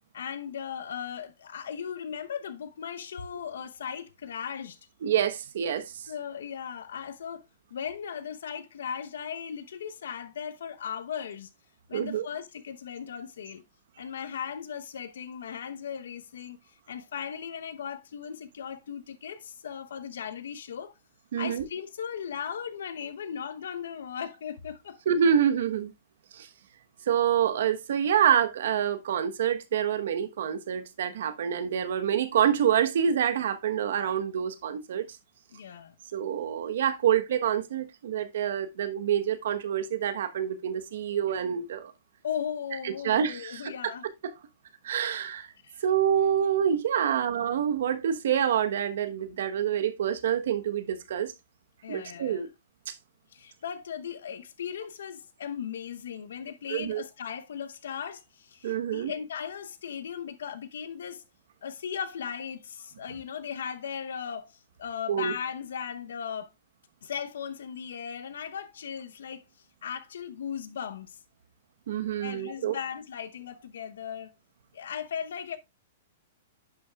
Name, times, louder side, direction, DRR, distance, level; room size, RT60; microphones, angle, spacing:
voice 1, 0.1-4.8 6.1-7.4 7.7-11.5 11.9-13.6 14.0-16.6 16.9-20.9 21.4-25.0 35.5-35.9 42.2-44.0 45.6-45.8 47.1-47.2 51.8-52.5 53.3-61.2 61.6-66.5 67.0-69.4 69.8-71.2 72.2-74.3 74.7-75.6, left 8 dB, 80° left, 0.9 m, -37 dB
voice 2, 5.0-6.1 11.9-12.3 21.3-21.7 25.1-25.9 26.3-26.5 27.1-35.1 36.1-41.9 42.8-43.9 44.2-44.3 44.8-45.5 45.8-51.3 51.9-52.5 52.9-53.0 56.7-57.0 58.6-59.1 65.1-65.3 71.9-72.8, right 9 dB, 70° right, 1.0 m, -27 dB
10.5 x 5.5 x 2.3 m
hypercardioid pair, 130°, 0 cm